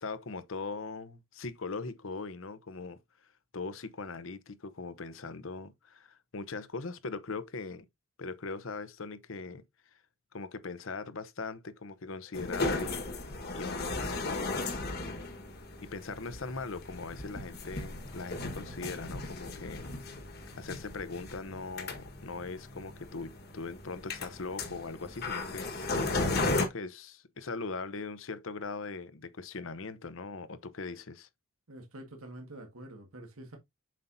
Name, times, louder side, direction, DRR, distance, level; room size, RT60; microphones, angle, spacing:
voice 1, 0.0-3.0 3.5-7.9 8.2-9.6 10.3-13.1 13.5-14.9 15.8-20.2 20.6-25.7 26.5-31.3, left 4 dB, 65° left, 0.8 m, -40 dB
sound 1, 12.3-26.7, left 2 dB, 50° left, 1.4 m, -36 dB
voice 2, 31.7-33.6, right 1 dB, 85° right, 1.7 m, -47 dB
7.5 x 5.6 x 2.7 m
head